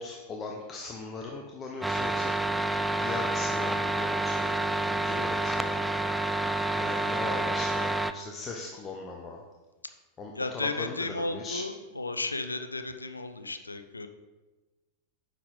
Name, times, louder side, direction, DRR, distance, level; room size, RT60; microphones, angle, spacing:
voice 1, 0.0-2.3 3.0-4.5 4.8-5.8 6.7-9.4 10.2-11.6, left 3 dB, 25° left, 0 dB, 1.0 m, -39 dB
sound 1, 1.8-8.1, right 2 dB, 5° right, 0.4 m, -28 dB
voice 2, 10.3-14.1, left 2 dB, 80° left, 8 dB, 0.6 m, -34 dB
10.0 x 6.6 x 3.8 m, 1.2 s
figure-of-eight pair, 90°, 0 cm